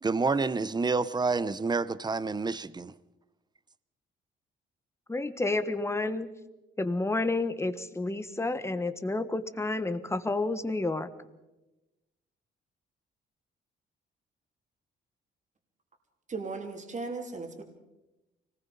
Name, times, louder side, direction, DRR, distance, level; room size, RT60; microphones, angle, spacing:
voice 1, 0.0-2.9, right 4 dB, 20° right, 0.8 m, -28 dB
voice 2, 5.1-6.3 6.8-11.1, left 2 dB, 15° left, 1.5 m, -30 dB
voice 3, 16.3-17.6, right 3 dB, 40° right, 3.4 m, -36 dB
25.0 x 19.5 x 5.4 m
cardioid pair, 90°, 20 cm